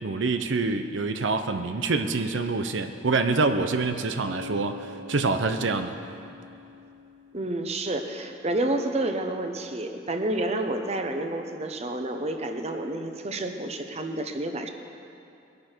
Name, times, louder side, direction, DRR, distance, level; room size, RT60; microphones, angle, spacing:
voice 1, 0.0-6.0, right 3 dB, 85° right, 7 dB, 0.7 m, -26 dB
Bass guitar, 4.3-7.9, left 2 dB, 65° right, 1.1 m, -44 dB
voice 2, 7.3-14.7, right 1 dB, 35° right, 5 dB, 0.9 m, -29 dB
21.0 x 11.5 x 4.5 m, 2.7 s
head